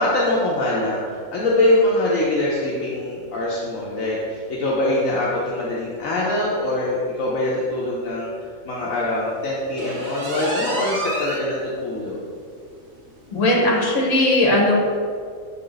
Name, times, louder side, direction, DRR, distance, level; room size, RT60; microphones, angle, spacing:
voice 1, 0.0-12.2, left 1 dB, 80° left, -5 dB, 1.2 m, -23 dB
sound 1, 9.8-11.5 11.9-12.0 12.5-12.6 12.9-13.0 14.0-14.1, right 1 dB, 55° right, 1.4 m, -29 dB
voice 2, 13.3-14.7, left 1 dB, 65° left, -3 dB, 1.6 m, -18 dB
7.8 x 3.8 x 3.9 m, 2.2 s
omnidirectional pair, 1.4 m